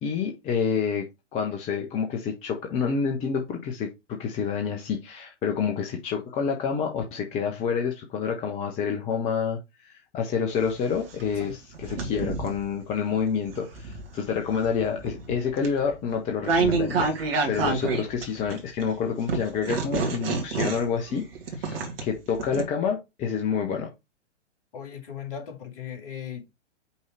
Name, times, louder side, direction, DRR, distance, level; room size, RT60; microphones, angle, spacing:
voice 1, 0.0-9.6 9.9-21.3 21.6-23.9, left 6 dB, 20° left, 0.8 m, -28 dB
sound 1, 10.5-12.7 13.3-18.8 19.3-22.6, right 4 dB, 50° right, 2.0 m, -29 dB
voice 2, 24.7-26.5, left 8 dB, 50° left, 2.2 m, -37 dB
5.6 x 3.8 x 4.6 m
figure-of-eight pair, 120°, 36 cm